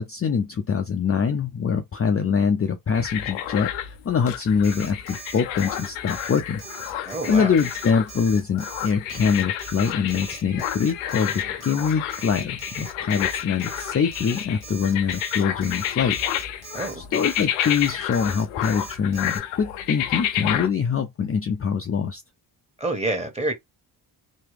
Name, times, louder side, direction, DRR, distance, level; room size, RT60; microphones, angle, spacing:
voice 1, 0.0-6.6 6.9-7.0 7.3-16.2 17.0-22.2, left 6 dB, 30° left, 0.5 m, -24 dB
sound 1, 2.9-20.7, left 11 dB, 85° left, 0.6 m, -30 dB
Alarm, 4.6-19.4, right 5 dB, 75° right, 1.3 m, -41 dB
voice 2, 7.0-7.5 11.4-11.5 16.7-17.1 22.8-23.5, right 2 dB, 15° right, 1.4 m, -28 dB
3.1 x 2.2 x 3.3 m
supercardioid pair, 50°, 48 cm